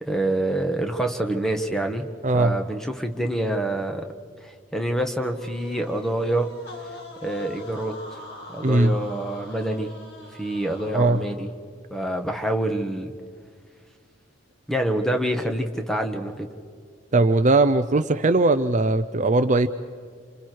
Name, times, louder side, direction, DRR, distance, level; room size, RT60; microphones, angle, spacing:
voice 1, 0.0-4.0 4.4-6.5 7.2-8.2 8.5-9.9 10.4-11.5 11.9-13.1 14.7-16.5, right 1 dB, ahead, 4 dB, 1.6 m, -26 dB
voice 2, 2.2-2.6 8.6-9.0 10.9-11.2 17.1-19.7, right 2 dB, 40° right, 10 dB, 0.6 m, -19 dB
sound 1, 5.2-11.5, left 2 dB, 60° left, 3.4 m, -42 dB
28.0 x 27.5 x 4.7 m, 2.1 s
head